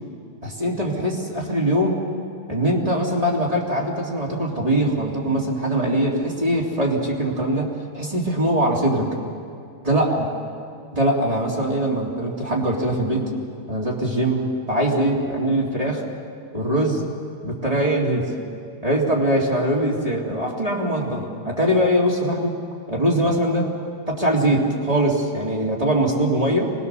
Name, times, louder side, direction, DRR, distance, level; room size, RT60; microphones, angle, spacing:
voice 1, 0.4-2.1 2.5-7.7 7.9-9.1 9.8-10.3 10.9-13.3 13.7-16.0 16.5-17.0 17.4-18.3 18.8-22.5 22.9-23.7 24.1-26.7, right 1 dB, 35° right, -4 dB, 2.9 m, -22 dB
24.5 x 19.5 x 6.9 m, 2.3 s
omnidirectional pair, 1.1 m